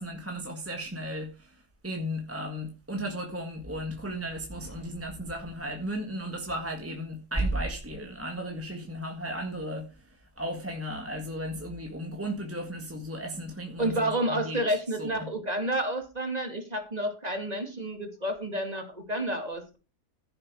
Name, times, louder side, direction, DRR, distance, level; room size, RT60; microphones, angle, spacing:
voice 1, 0.0-1.6 1.8-10.1 10.4-15.3, equal, 10° right, 1.6 m, -35 dB
voice 2, 13.8-19.8, right 1 dB, 25° right, 2.4 m, -30 dB
15.0 x 7.5 x 4.8 m
omnidirectional pair, 1.8 m